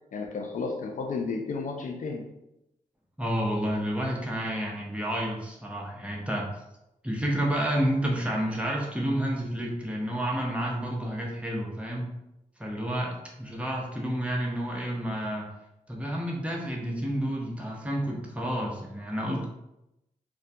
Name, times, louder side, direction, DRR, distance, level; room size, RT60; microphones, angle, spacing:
voice 1, 0.1-2.3, left 4 dB, 65° left, 2 dB, 0.4 m, -32 dB
voice 2, 3.2-6.5 7.0-12.1 12.6-15.5 15.9-19.4, equal, 10° right, -2 dB, 0.7 m, -30 dB
2.2 x 2.2 x 2.6 m, 0.87 s
cardioid pair, 55°, 15 cm